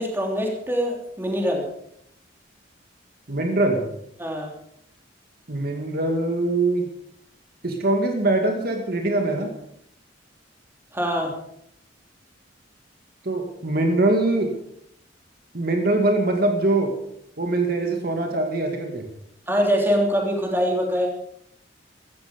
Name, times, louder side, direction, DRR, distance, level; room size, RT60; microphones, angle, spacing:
voice 1, 0.0-1.6 4.2-4.5 10.9-11.3 19.5-21.1, equal, 10° right, 0 dB, 3.3 m, -23 dB
voice 2, 3.3-3.8 5.5-6.9 7.6-9.5 13.2-14.5 15.5-16.9 17.4-19.1, right 2 dB, 55° right, 3 dB, 2.1 m, -22 dB
16.5 x 14.0 x 5.3 m, 0.73 s
head